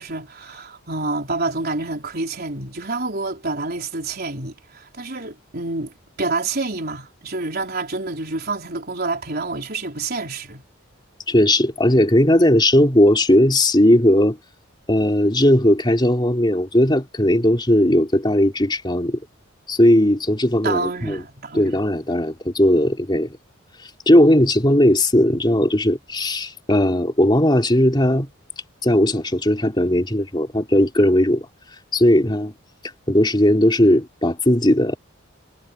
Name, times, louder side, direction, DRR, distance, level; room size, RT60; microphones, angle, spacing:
voice 1, 0.0-10.6 20.6-21.8, right 3 dB, 50° right, 4.4 m, -28 dB
voice 2, 11.3-14.4 14.9-19.2 19.7-21.2 21.5-23.3 24.1-28.3 28.8-31.5 31.9-32.5 33.1-35.0, left 1 dB, 20° left, 3.7 m, -17 dB
head